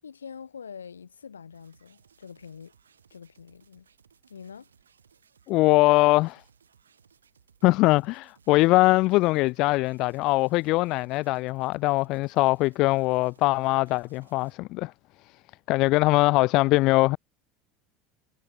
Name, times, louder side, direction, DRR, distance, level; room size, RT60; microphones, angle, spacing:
voice 1, 0.0-2.7 3.1-3.9 4.3-4.7, left 6 dB, 80° left, 6.4 m, -44 dB
sound 1, 1.5-14.6, right 7 dB, 80° right, 6.4 m, -62 dB
voice 2, 5.5-6.4 7.6-14.9 15.7-17.2, left 21 dB, 50° left, 0.4 m, -22 dB
figure-of-eight pair, 70°, 0 cm